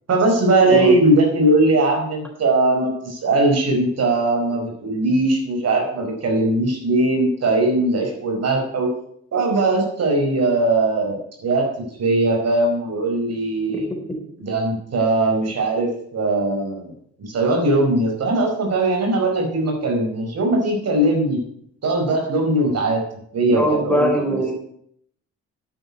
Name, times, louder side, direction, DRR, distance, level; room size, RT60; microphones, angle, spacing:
voice 1, 0.1-8.9 9.3-11.6 12.0-13.9 14.4-16.9 17.2-21.4 21.8-23.0 23.3-24.1, right 2 dB, 55° right, 2 dB, 4.9 m, -20 dB
voice 2, 23.5-24.5, equal, 5° left, 2 dB, 4.1 m, -21 dB
10.5 x 8.9 x 8.3 m, 0.67 s
cardioid pair, 90°, 30 cm